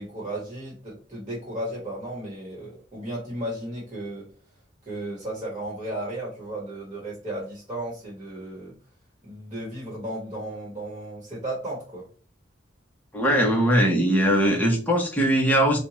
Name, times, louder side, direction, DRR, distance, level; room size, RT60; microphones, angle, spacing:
voice 1, 0.0-4.3 4.8-8.8 9.2-12.1, right 1 dB, 20° right, -4 dB, 1.3 m, -34 dB
voice 2, 13.1-15.8, equal, 10° left, -1 dB, 0.7 m, -20 dB
4.3 x 2.2 x 3.0 m, 0.38 s
head